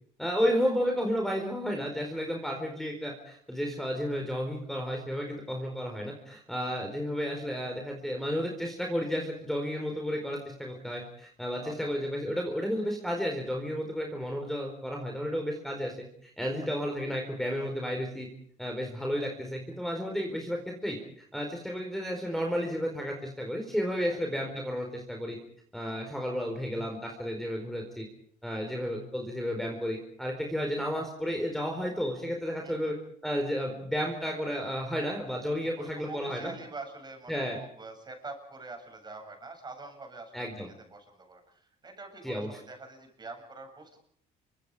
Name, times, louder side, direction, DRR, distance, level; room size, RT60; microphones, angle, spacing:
voice 1, 0.2-15.9 16.2-18.3 18.6-21.0 21.3-25.4 25.7-28.0 28.4-32.9 33.2-36.5 37.3-37.6 40.3-40.7 42.2-42.5, equal, ahead, 2 dB, 4.6 m, -32 dB
voice 2, 11.6-11.9 24.1-24.2 25.9-26.0 28.6-28.7 32.6-32.9 35.8-40.5 40.9-44.0, right 3 dB, 25° right, 4 dB, 7.8 m, -45 dB
28.0 x 25.0 x 5.1 m, 0.62 s
cardioid pair, 110°, 17 cm